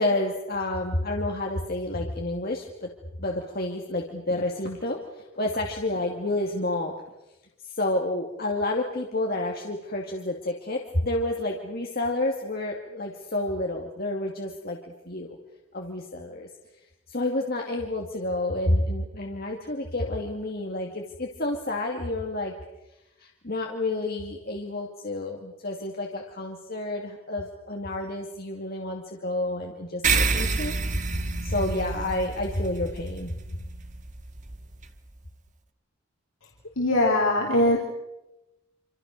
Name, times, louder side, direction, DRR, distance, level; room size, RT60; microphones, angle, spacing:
voice 1, 0.0-2.9 3.2-6.9 7.6-15.4 15.7-16.5 17.1-22.5 23.2-30.7 31.4-33.3, left 1 dB, 45° left, 1 dB, 2.5 m, -29 dB
sound 1, 30.0-34.9, right 4 dB, 35° right, 1.8 m, -29 dB
voice 2, 36.8-37.8, left 1 dB, 75° left, -1 dB, 3.9 m, -21 dB
27.0 x 27.0 x 6.7 m, 0.94 s
head